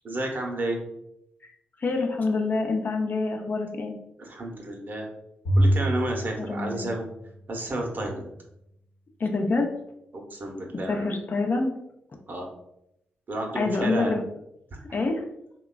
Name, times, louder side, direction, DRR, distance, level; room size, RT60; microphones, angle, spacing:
voice 1, 0.0-0.8 4.2-5.1 5.6-7.1 7.5-8.3 10.1-11.1 12.3-12.5 13.3-14.1, right 1 dB, 45° right, 1 dB, 0.7 m, -31 dB
voice 2, 1.8-4.0 6.5-6.9 9.2-9.7 10.9-11.7 13.6-14.2 14.9-15.2, left 3 dB, 45° left, 2 dB, 0.5 m, -26 dB
Bowed string instrument, 5.4-7.8, right 1 dB, 75° left, 0.9 m, -26 dB
3.0 x 2.2 x 2.2 m, 0.80 s
supercardioid pair, 45°, 4 cm